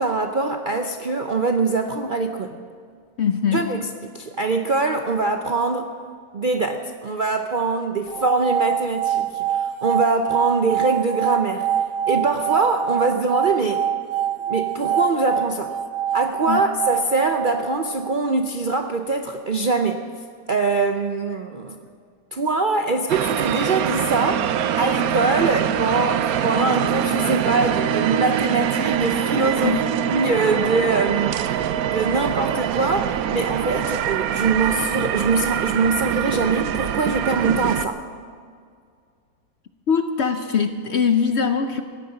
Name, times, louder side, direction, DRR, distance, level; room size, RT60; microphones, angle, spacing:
voice 1, 0.0-2.6 3.5-3.9 4.1-5.9 6.3-11.7 12.1-13.9 14.5-15.7 16.1-20.1 20.5-21.8 22.3-24.5 24.8-29.8 30.1-31.4 31.9-38.0, right 3 dB, 50° right, 5 dB, 0.6 m, -23 dB
voice 2, 3.2-3.7 16.5-16.6 29.6-29.8 39.9-41.8, left 6 dB, 55° left, 8 dB, 0.8 m, -21 dB
sound 1, 8.1-18.2, right 10 dB, 85° right, 1.2 m, -25 dB
sound 2, 23.1-37.9, right 9 dB, 70° right, 1.1 m, -24 dB
16.0 x 9.6 x 8.8 m, 2.1 s
omnidirectional pair, 1.7 m